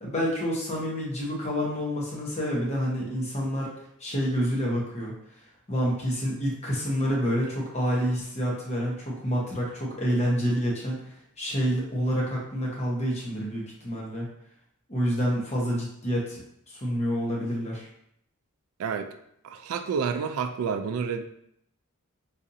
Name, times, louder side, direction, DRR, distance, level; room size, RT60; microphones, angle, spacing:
voice 1, 0.0-3.7 4.0-5.1 5.7-11.0 11.4-14.3 14.9-17.9, equal, 30° left, -4 dB, 0.8 m, -28 dB
voice 2, 18.8-19.1 19.4-21.2, right 6 dB, 80° right, 9 dB, 0.3 m, -29 dB
4.0 x 2.5 x 2.7 m, 0.73 s
head